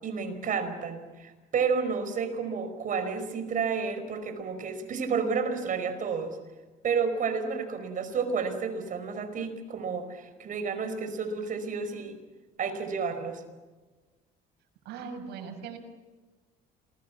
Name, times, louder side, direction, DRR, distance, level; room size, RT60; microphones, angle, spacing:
voice 1, 0.0-6.4 6.8-12.2 12.6-13.4, right 5 dB, 50° right, 8 dB, 5.1 m, -31 dB
voice 2, 14.8-15.8, right 6 dB, 80° right, 4 dB, 6.3 m, -39 dB
27.5 x 21.0 x 7.4 m, 1.3 s
cardioid pair, 110°, 17 cm